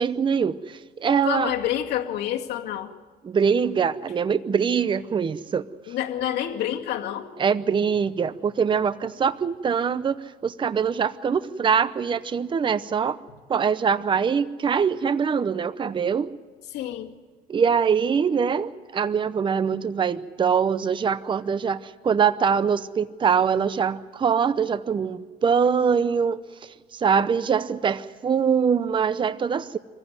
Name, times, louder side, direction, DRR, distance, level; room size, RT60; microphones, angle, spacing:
voice 1, 0.0-1.5 3.2-6.0 7.4-13.2 13.5-16.3 17.5-29.8, right 6 dB, 30° right, 14 dB, 0.7 m, -23 dB
voice 2, 1.3-2.9 5.9-7.3 16.7-17.1, left 11 dB, 80° left, 1 dB, 2.1 m, -28 dB
26.0 x 15.5 x 9.4 m, 1.4 s
cardioid pair, 110°, 17 cm